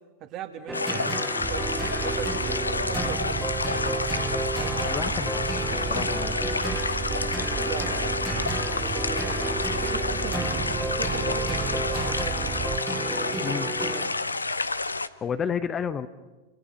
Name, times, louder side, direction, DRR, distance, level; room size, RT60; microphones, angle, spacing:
voice 1, 0.2-3.6 4.5-4.8 7.6-8.2 8.7-9.4 9.8-12.6 13.1-14.1, right 9 dB, 40° right, 6 dB, 2.5 m, -39 dB
sound 1, 0.7-15.1, left 3 dB, 90° left, 0.7 m, -29 dB
sound 2, 0.7-14.4, right 2 dB, 5° right, 2.3 m, -33 dB
sound 3, 1.4-12.8, right 7 dB, 25° right, 0.7 m, -34 dB
voice 2, 4.9-6.4 13.4-13.7 15.2-16.1, left 7 dB, 25° left, 12 dB, 0.9 m, -31 dB
29.5 x 27.0 x 5.7 m, 1.2 s
figure-of-eight pair, 95°, 0 cm